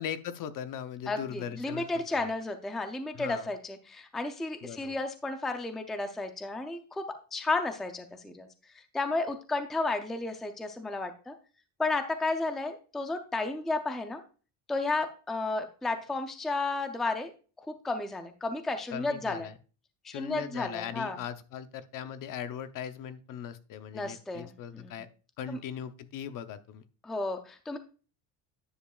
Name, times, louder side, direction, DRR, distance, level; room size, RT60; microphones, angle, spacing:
voice 1, 0.0-2.3 3.1-3.5 4.6-5.0 18.9-19.5 20.1-25.1 25.4-26.8, left 9 dB, 50° left, 11 dB, 0.7 m, -39 dB
voice 2, 1.1-7.0 7.3-8.5 8.9-11.3 11.8-14.2 14.7-17.3 17.8-19.5 20.0-21.2 23.9-25.0 25.5-25.6 27.0-27.8, left 3 dB, ahead, 6 dB, 0.4 m, -32 dB
10.0 x 7.1 x 2.3 m, 0.35 s
cardioid pair, 165°, 42 cm